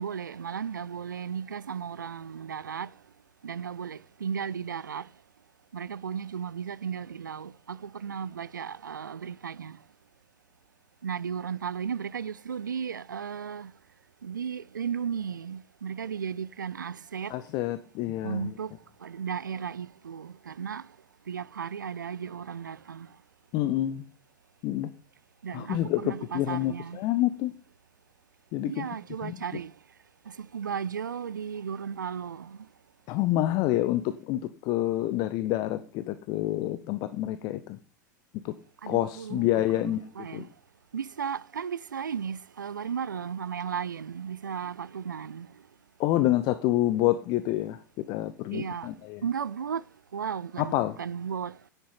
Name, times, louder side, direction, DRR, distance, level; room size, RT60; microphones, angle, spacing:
voice 1, 0.0-2.9 3.4-5.1 5.7-9.8 11.0-13.7 14.2-17.4 18.2-18.7 19.0-20.9 21.3-23.1 25.4-27.0 28.7-29.7 30.4-32.6 38.8-40.5 40.9-45.5 48.5-48.9 49.2-49.8 50.1-51.7, right 7 dB, 80° right, 0.4 m, -35 dB
voice 2, 17.3-18.5 23.5-24.0 24.6-24.9 25.5-27.5 28.5-28.8 29.2-29.4 33.1-37.8 38.4-38.5 38.9-40.5 46.0-47.8 48.1-49.2 50.6-51.0, left 14 dB, 40° left, 0.8 m, -28 dB
10.5 x 8.2 x 5.7 m
figure-of-eight pair, 90°, 10 cm